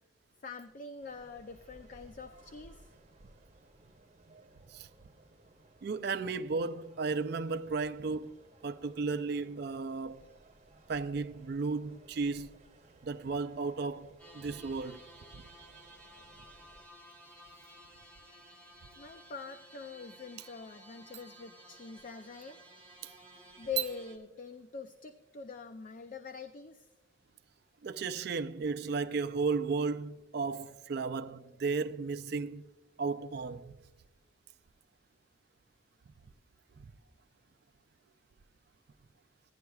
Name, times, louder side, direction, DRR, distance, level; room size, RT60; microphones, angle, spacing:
voice 1, 0.4-2.9 19.0-22.6 23.6-26.9, left 6 dB, 40° left, 0.4 m, -44 dB
sound 1, 1.0-16.9, right 2 dB, 35° right, 0.8 m, -60 dB
voice 2, 5.8-8.4 8.6-10.2 10.9-12.5 13.0-14.1 14.3-15.0 15.3-15.4 27.8-32.6 33.0-33.7, right 4 dB, 50° right, 0.4 m, -34 dB
sound 2, 14.2-24.2, right 1 dB, 10° left, 1.3 m, -55 dB
16.0 x 10.5 x 2.3 m
head